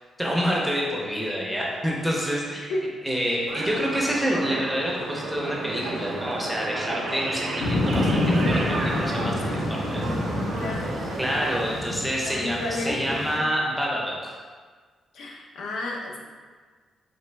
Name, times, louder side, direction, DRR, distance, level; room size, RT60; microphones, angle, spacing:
voice 1, 0.2-2.7 3.0-10.1 11.2-14.4, equal, ahead, -4 dB, 0.5 m, -27 dB
sound 1, 3.5-11.6, right 2 dB, 55° right, 0.6 m, -32 dB
sound 2, 7.6-13.4, left 1 dB, 85° left, 1.0 m, -27 dB
voice 2, 9.8-10.2 10.5-10.9 12.2-13.5 15.1-16.2, left 2 dB, 70° left, -1 dB, 0.6 m, -32 dB
4.1 x 2.9 x 3.3 m, 1.5 s
wide cardioid pair, 170°, 0 cm